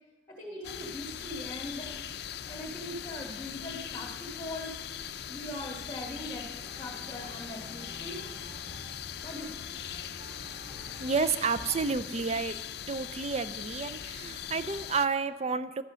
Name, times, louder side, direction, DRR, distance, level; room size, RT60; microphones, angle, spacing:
voice 1, 0.3-4.8 5.3-8.2 9.2-9.5, left 1 dB, 20° left, -4 dB, 1.9 m, -41 dB
sound 1, 0.6-15.1, left 9 dB, 65° left, 0.5 m, -40 dB
sound 2, 6.6-11.9, equal, 20° right, 2.2 m, -50 dB
voice 2, 11.0-12.6 12.9-15.8, right 5 dB, 35° right, 13 dB, 0.5 m, -30 dB
12.0 x 8.2 x 6.3 m, 1.2 s
head